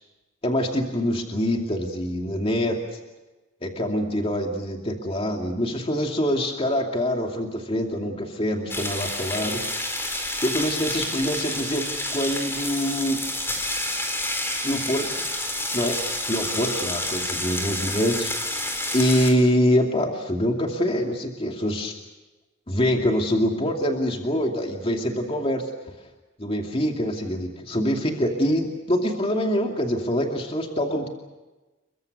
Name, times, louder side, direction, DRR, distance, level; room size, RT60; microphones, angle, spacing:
voice 1, 0.4-3.0 3.6-9.6 10.4-13.2 14.6-15.1 15.7-16.0 16.2-18.7 18.9-21.9 22.7-25.6 26.4-31.1, equal, 30° left, 2 dB, 2.6 m, -25 dB
sound 1, 8.7-19.3, left 1 dB, 10° left, 4.4 m, -29 dB
30.0 x 23.5 x 6.7 m, 1.1 s
head